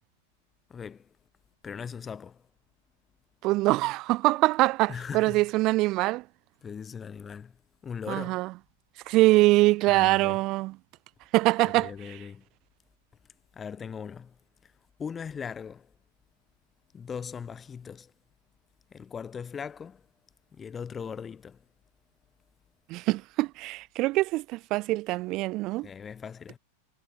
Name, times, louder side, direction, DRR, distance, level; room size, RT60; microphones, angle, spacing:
voice 1, 0.7-1.1 1.6-2.5 4.9-5.4 6.6-7.6 7.8-8.4 9.9-10.4 11.6-12.5 13.5-14.4 14.6-14.7 15.0-15.9 16.9-18.1 18.9-20.1 20.5-21.6 25.8-26.6, left 6 dB, 20° left, 0.5 m, -39 dB
voice 2, 3.4-6.2 8.1-8.5 9.1-10.7 11.3-11.9 22.9-25.9, right 20 dB, 40° right, 0.3 m, -24 dB
figure-of-eight pair, 90°, 0 cm